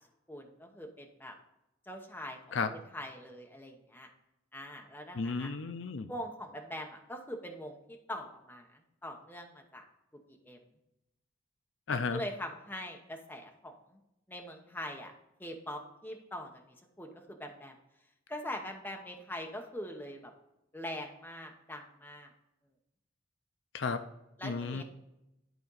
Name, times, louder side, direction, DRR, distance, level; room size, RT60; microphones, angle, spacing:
voice 1, 0.3-1.3 1.9-2.4 2.9-4.1 4.5-5.5 6.1-9.8 10.3-10.6 11.9-14.0 14.3-15.1 15.4-16.6 17.0-17.8 18.3-20.3 20.7-22.3 24.4-24.8, left 1 dB, 10° left, 2 dB, 0.9 m, -43 dB
voice 2, 5.1-6.1 11.9-12.2 23.7-24.0 24.4-24.8, left 4 dB, 60° left, 10 dB, 0.5 m, -33 dB
11.0 x 4.3 x 3.9 m, 0.89 s
head